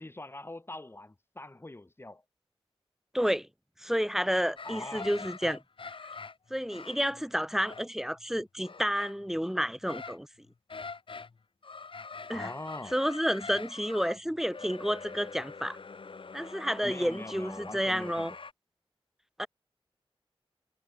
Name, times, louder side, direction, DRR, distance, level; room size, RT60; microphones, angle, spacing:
voice 1, 0.0-2.2 4.6-5.1 12.3-13.0 16.8-18.4, left 2 dB, 25° left, 2.6 m, -43 dB
voice 2, 3.1-3.5 3.8-5.6 6.5-10.3 12.3-12.5 12.9-15.8 16.3-18.3 19.4-19.5, equal, 5° right, 1.4 m, -30 dB
sound 1, 4.6-10.2 10.5-11.4 11.6-18.5, left 4 dB, 60° left, 1.9 m, -44 dB
wide cardioid pair, 75°, 10 cm